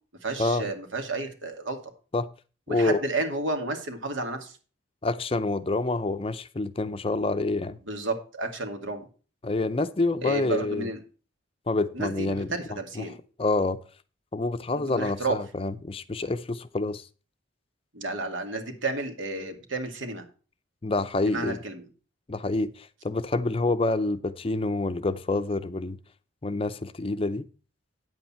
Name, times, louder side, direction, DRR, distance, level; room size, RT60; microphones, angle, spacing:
voice 1, 0.2-1.8 2.7-4.6 7.8-9.0 10.2-11.0 11.9-13.2 14.9-15.4 17.9-20.2 21.3-21.9, right 2 dB, 80° right, 2.3 m, -31 dB
voice 2, 2.7-3.0 5.0-7.8 9.4-10.9 11.7-12.5 13.0-13.1 13.4-13.8 14.3-17.1 20.8-21.6 22.3-26.0 26.4-27.5, left 2 dB, 30° left, 0.5 m, -27 dB
9.5 x 8.3 x 4.3 m
head